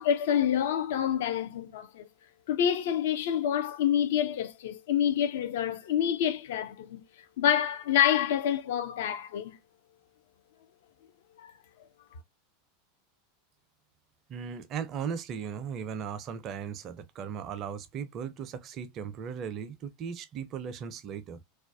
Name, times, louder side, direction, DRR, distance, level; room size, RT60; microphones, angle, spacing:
voice 1, 0.0-2.1 2.5-7.0 7.4-9.6 11.4-11.5, left 9 dB, 60° left, 0.4 m, -27 dB
voice 2, 14.3-21.4, right 7 dB, 40° right, 0.4 m, -37 dB
2.4 x 2.1 x 2.4 m
figure-of-eight pair, 85°, 0 cm